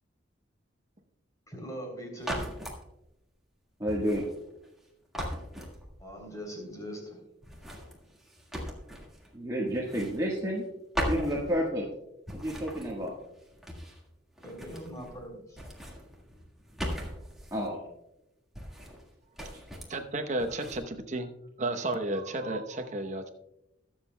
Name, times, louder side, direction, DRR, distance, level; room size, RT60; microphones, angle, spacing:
voice 1, 1.5-2.5 6.0-7.2 14.4-15.6, equal, 20° left, 0 dB, 3.3 m, -41 dB
sound 1, 2.2-2.8 3.9-4.8 5.1-6.2 7.4-9.3 9.7-10.7 10.9-11.9 12.3-14.1 14.4-15.2 15.5-17.7 18.5-19.1 19.4-20.0 20.4-20.8, equal, ahead, 1.7 m, -39 dB
voice 2, 3.8-4.2 9.3-10.7 11.1-11.9 12.3-13.1 17.5-17.8, equal, 20° right, -4 dB, 1.4 m, -30 dB
voice 3, 19.9-21.3 21.6-23.3, right 2 dB, 35° right, 6 dB, 0.9 m, -32 dB
21.0 x 7.4 x 2.2 m, 0.89 s
head